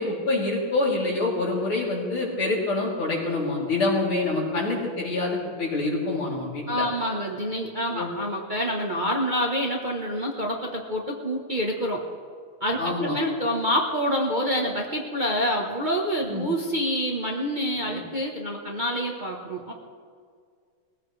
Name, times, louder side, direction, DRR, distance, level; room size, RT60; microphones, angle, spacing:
voice 1, 0.0-6.8 7.9-8.1 12.8-13.1 16.3-16.5 17.9-18.0, left 2 dB, 80° left, -4 dB, 4.3 m, -26 dB
voice 2, 6.7-12.0 12.6-19.7, equal, 25° right, -1 dB, 1.1 m, -27 dB
21.5 x 15.5 x 3.3 m, 2.1 s
omnidirectional pair, 2.3 m